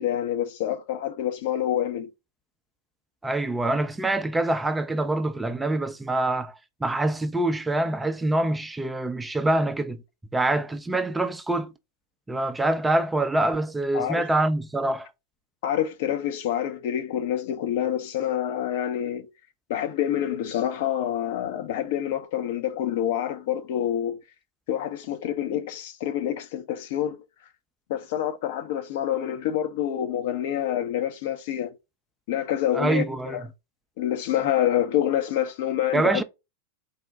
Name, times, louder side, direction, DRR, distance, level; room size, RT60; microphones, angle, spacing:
voice 1, 0.0-2.1 13.9-14.3 15.6-19.3 19.7-24.2 24.7-27.2 27.9-31.7 32.3-33.4 34.0-36.2, left 11 dB, 50° left, 0.6 m, -27 dB
voice 2, 3.2-10.0 10.3-11.7 12.3-15.1 32.7-33.4 35.9-36.2, right 2 dB, 10° right, 0.4 m, -25 dB
4.1 x 2.1 x 3.7 m
figure-of-eight pair, 90°, 0 cm